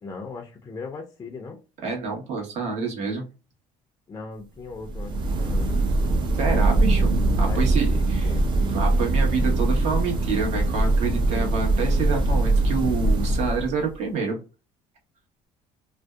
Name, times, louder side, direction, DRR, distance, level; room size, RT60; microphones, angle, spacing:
voice 1, 0.0-1.6 4.1-5.7 7.4-8.4, left 4 dB, 25° left, 0.4 m, -39 dB
voice 2, 1.8-3.2 6.3-8.3 8.5-14.4, right 4 dB, 60° right, 1.1 m, -28 dB
sound 1, 4.8-13.9, right 2 dB, 35° right, 0.4 m, -22 dB
2.6 x 2.1 x 2.2 m
cardioid pair, 135°, 13 cm